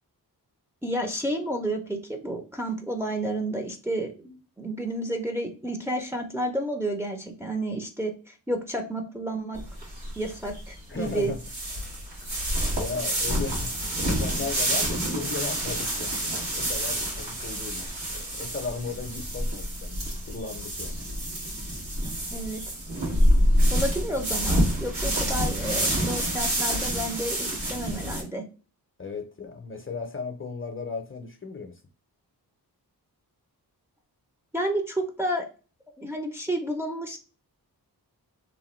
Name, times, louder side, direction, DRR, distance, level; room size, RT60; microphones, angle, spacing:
voice 1, 0.8-9.6 10.2-11.3 22.0-22.6 23.7-28.4 34.5-35.5 36.0-37.2, right 1 dB, 5° right, 2 dB, 0.6 m, -31 dB
sound 1, 9.6-28.2, equal, 80° right, 1.5 m, -27 dB
voice 2, 10.9-11.4 12.7-13.8 14.0-21.0 29.0-31.8, left 4 dB, 35° left, 5 dB, 0.6 m, -36 dB
3.0 x 2.2 x 3.0 m, 0.35 s
cardioid pair, 70°, 38 cm